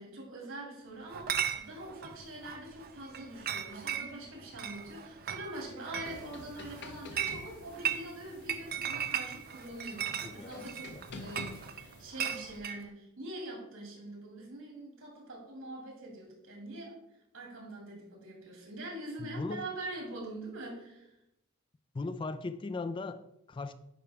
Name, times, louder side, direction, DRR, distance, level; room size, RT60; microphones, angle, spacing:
voice 1, 0.0-17.0 17.3-21.1, right 1 dB, 80° right, 2.5 m, -44 dB
Chatter / Chink clink, 1.1-12.8, right 9 dB, 45° right, 0.5 m, -38 dB
sound 1, 6.0-12.1, left 3 dB, 55° left, 0.7 m, -49 dB
voice 2, 10.2-11.2 19.2-19.7 21.9-23.7, left 3 dB, 25° left, 0.3 m, -39 dB
10.0 x 4.7 x 3.4 m
head